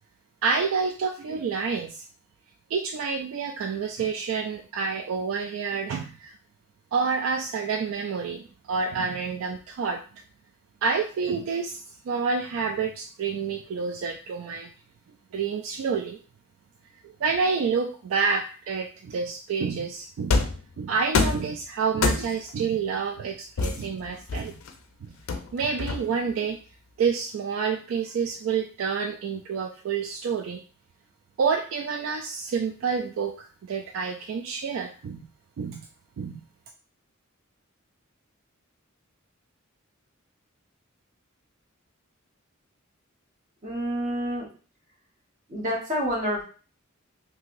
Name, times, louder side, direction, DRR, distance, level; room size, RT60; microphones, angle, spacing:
voice 1, 0.4-2.0 2.7-6.3 6.9-10.0 10.8-14.7 15.3-16.2 17.0-20.4 20.8-24.5 25.0-25.2 25.5-26.6 27.0-30.6 31.4-35.3 35.6-35.8 36.2-36.4, right 5 dB, 70° right, 4 dB, 0.3 m, -28 dB
sound 1, 20.3-20.7 21.1-21.5 22.0-22.5 23.6-24.7 25.3-26.3, left 4 dB, 85° left, 0.4 m, -26 dB
voice 2, 43.6-44.5 45.5-46.4, equal, 40° right, -3 dB, 1.0 m, -28 dB
3.1 x 2.7 x 2.5 m, 0.39 s
head